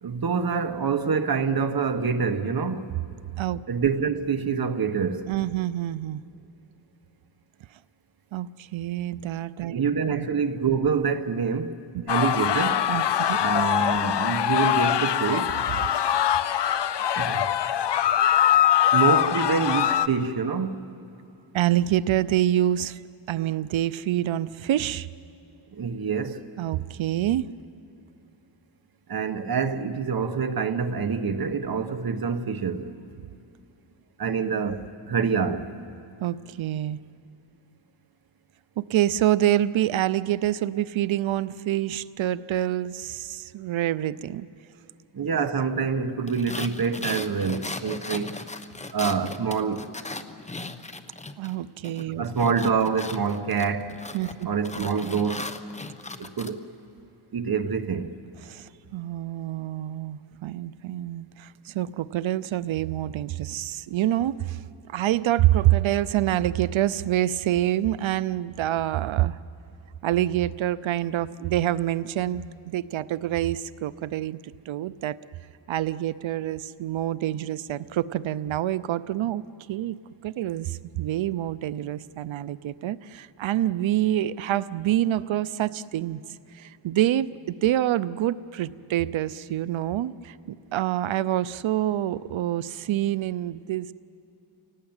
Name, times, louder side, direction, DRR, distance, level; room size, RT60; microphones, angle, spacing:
voice 1, 0.0-3.0 3.7-5.3 9.7-11.8 12.1-12.9 13.4-15.6 17.2-17.5 18.9-20.9 25.7-26.4 29.1-32.9 34.2-35.7 45.1-48.3 48.9-49.8 52.2-54.0 54.4-55.5 56.2-56.7 57.3-58.2, right 5 dB, 50° right, 1.4 m, -26 dB
voice 2, 5.3-6.2 8.3-10.2 12.9-13.5 21.5-23.0 23.3-25.1 26.6-27.5 36.2-37.0 38.8-44.5 51.4-52.3 54.1-54.5 58.4-69.4 70.0-74.4 74.7-75.2 75.7-79.4 79.7-80.0 80.2-86.2 86.5-87.3 87.6-93.9, right 13 dB, 80° right, 0.7 m, -26 dB
sound 1, 12.1-20.1, left 10 dB, 60° left, 0.8 m, -23 dB
sound 2, 46.3-51.5 51.8-56.5, left 2 dB, 15° left, 1.0 m, -37 dB
30.0 x 18.0 x 8.9 m
wide cardioid pair, 105°, 47 cm